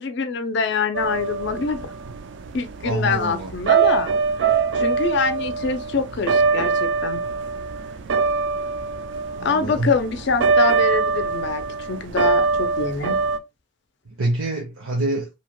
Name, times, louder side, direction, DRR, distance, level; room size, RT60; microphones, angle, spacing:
voice 1, 0.0-1.8 2.5-4.1 4.7-7.2 9.4-11.6 11.9-13.2, left 4 dB, 55° left, 0.4 m, -24 dB
sound 1, 0.9-13.4, right 5 dB, 55° right, 0.3 m, -23 dB
voice 2, 2.8-3.5 9.3-9.9 14.1-15.3, right 2 dB, 85° right, 0.9 m, -26 dB
2.8 x 2.2 x 2.9 m
head